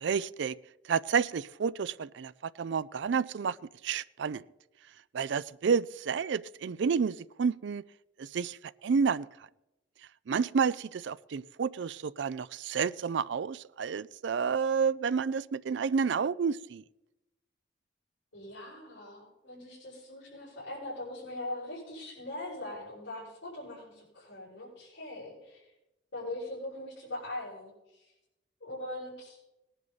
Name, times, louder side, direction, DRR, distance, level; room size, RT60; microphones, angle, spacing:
voice 1, 0.0-0.6 0.9-3.6 3.8-4.4 5.1-7.8 8.2-8.6 8.8-9.3 10.3-16.8, right 6 dB, 65° right, 0.4 m, -30 dB
voice 2, 18.3-25.7 26.1-28.1 28.6-29.4, left 1 dB, 70° left, 6.0 m, -41 dB
18.5 x 10.5 x 4.0 m
head